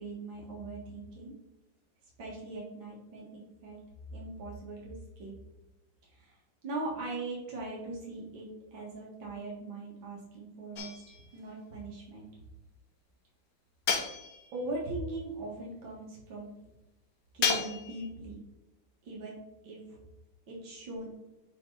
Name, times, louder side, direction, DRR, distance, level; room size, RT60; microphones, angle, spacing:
voice 1, 0.0-1.3 2.2-3.8 4.1-5.3 6.0-8.5 8.7-12.3 14.5-16.5 17.3-18.4 19.0-19.4 19.6-20.0 20.5-21.2, right 2 dB, 75° right, -2 dB, 2.5 m, -40 dB
sound 1, 10.8-11.4 13.9-14.7 17.4-18.1, left 6 dB, 60° left, 1.4 m, -32 dB
8.0 x 3.9 x 4.0 m, 0.94 s
omnidirectional pair, 2.1 m